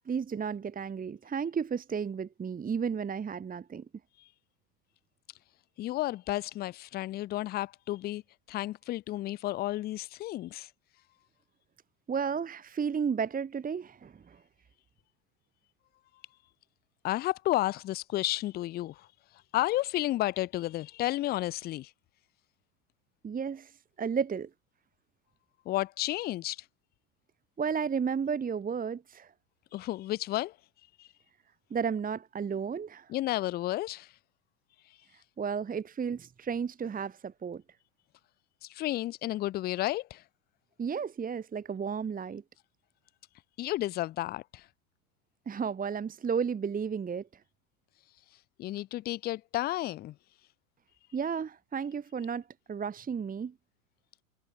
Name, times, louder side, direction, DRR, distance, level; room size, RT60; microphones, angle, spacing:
voice 1, 0.1-3.8 12.1-14.4 23.2-23.7 24.0-24.5 27.6-29.3 31.7-33.1 35.4-37.6 40.8-42.4 45.4-47.2 51.1-53.5, right 6 dB, 20° right, 1.7 m, -33 dB
voice 2, 5.8-8.2 8.5-10.7 17.0-19.1 19.5-21.9 25.7-26.6 29.7-30.6 31.0-31.1 33.1-34.1 38.6-40.2 43.6-44.7 48.6-50.2, left 16 dB, 25° left, 0.4 m, -32 dB
hypercardioid pair, 90°, 44 cm